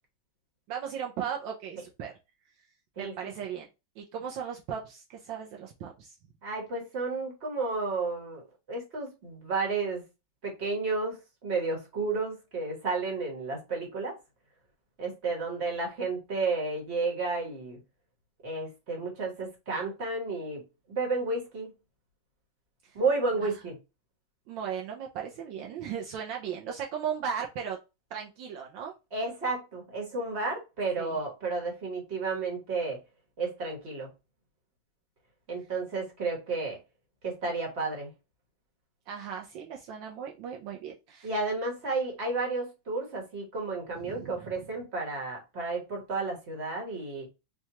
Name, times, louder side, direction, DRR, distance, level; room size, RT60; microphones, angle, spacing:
voice 1, 0.7-2.2 3.0-3.7 4.0-6.1 24.5-27.8 28.1-28.9 31.0-31.2 39.1-41.3 44.0-44.6, right 8 dB, 75° right, 1.3 m, -37 dB
voice 2, 3.0-3.3 6.4-8.4 8.7-10.0 10.4-11.2 11.4-14.2 15.0-17.8 18.4-20.6 20.9-21.7 22.9-23.8 29.1-33.0 33.4-34.1 35.5-36.8 37.2-38.1 41.2-47.3, right 3 dB, 40° right, 1.3 m, -32 dB
4.5 x 2.3 x 2.8 m
omnidirectional pair, 2.1 m